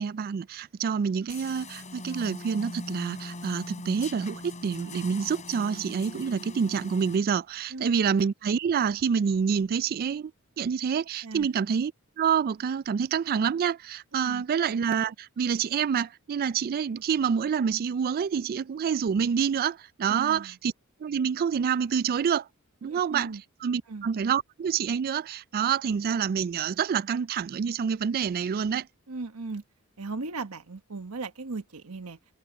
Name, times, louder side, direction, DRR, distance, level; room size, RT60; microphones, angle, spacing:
voice 1, 0.0-10.3 10.6-11.9 12.2-20.7 21.0-22.5 22.8-23.3 23.6-28.9, right 7 dB, 40° right, 0.3 m, -27 dB
sound 1, 1.3-7.2, left 2 dB, 35° left, 4.0 m, -41 dB
voice 2, 14.1-14.4 20.1-20.6 22.8-23.4 23.9-24.1 29.1-29.6 30.0-32.2, right 3 dB, 80° right, 1.2 m, -37 dB
head